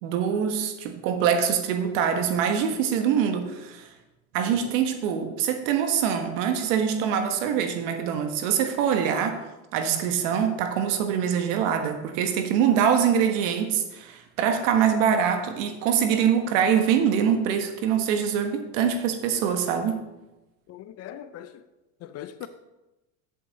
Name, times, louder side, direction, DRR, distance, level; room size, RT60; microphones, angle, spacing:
voice 1, 0.0-3.9 4.3-9.4 9.7-20.0, right 8 dB, 70° right, 1.4 m, -24 dB
voice 2, 20.7-21.6 22.0-22.5, left 11 dB, 40° left, 0.5 m, -40 dB
8.0 x 7.6 x 4.0 m
supercardioid pair, 105°, 39 cm